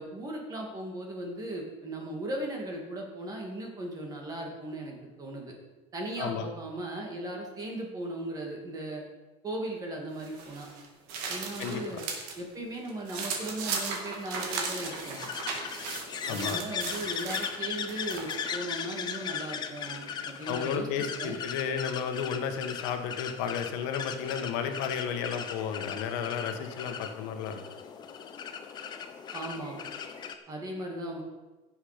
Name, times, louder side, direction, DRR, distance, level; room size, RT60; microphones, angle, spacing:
voice 1, 0.0-5.5 5.9-9.0 9.4-10.7 11.3-12.0 12.4-15.2 16.3-21.4 29.3-29.8 30.5-31.2, right 1 dB, 20° right, 1 dB, 2.3 m, -37 dB
sound 1, 10.2-12.4 12.7-18.5, right 4 dB, 65° right, 2.3 m, -37 dB
voice 2, 11.6-12.0 16.3-16.6 20.5-27.6, left 7 dB, 75° left, 6 dB, 1.5 m, -33 dB
sound 2, 14.5-30.3, left 7 dB, 25° left, 0.8 m, -38 dB
16.0 x 7.4 x 5.1 m, 1.1 s
cardioid pair, 175°, 16 cm